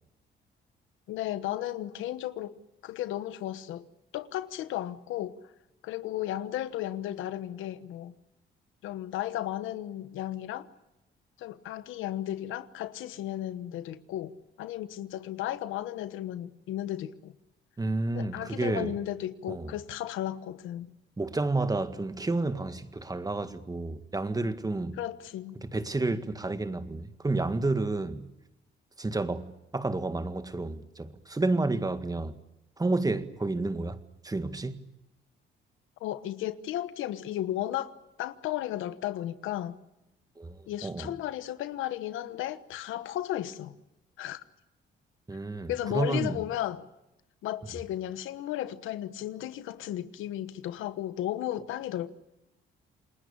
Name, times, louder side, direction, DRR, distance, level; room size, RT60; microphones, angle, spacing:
voice 1, 1.1-2.5 2.8-3.8 4.1-5.4 5.8-8.1 8.8-10.7 11.4-17.3 18.1-20.9 25.0-25.6 36.0-37.9 38.2-39.8 40.7-43.7 44.2-44.4 45.7-46.8 47.4-52.2, left 13 dB, 90° left, 1.2 m, -34 dB
voice 2, 17.8-19.0 19.5-19.7 21.2-25.0 25.6-28.3 29.0-32.4 32.8-34.0 34.2-34.8 40.4-41.1 45.3-46.4, right 2 dB, 20° right, 1.8 m, -30 dB
28.5 x 20.0 x 8.6 m
cardioid pair, 90°, 20 cm